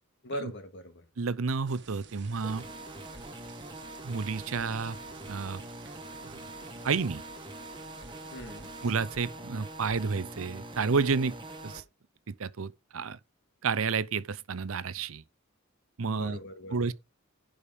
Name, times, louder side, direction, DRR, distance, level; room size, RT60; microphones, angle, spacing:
voice 1, 0.2-1.1 8.3-8.7 16.1-16.9, equal, 60° left, 2.0 m, -40 dB
voice 2, 1.2-2.6 4.0-5.0 5.3-5.6 6.2-6.4 6.8-7.2 8.8-11.3 11.6-11.8 12.3-13.2 13.6-15.2 16.0-16.4 16.7-16.9, right 5 dB, 75° right, 0.6 m, -30 dB
sound 1, 1.7-8.9, right 5 dB, 55° right, 1.4 m, -53 dB
sound 2, 2.4-11.8, right 2 dB, 25° right, 1.5 m, -44 dB
11.5 x 5.1 x 5.2 m
head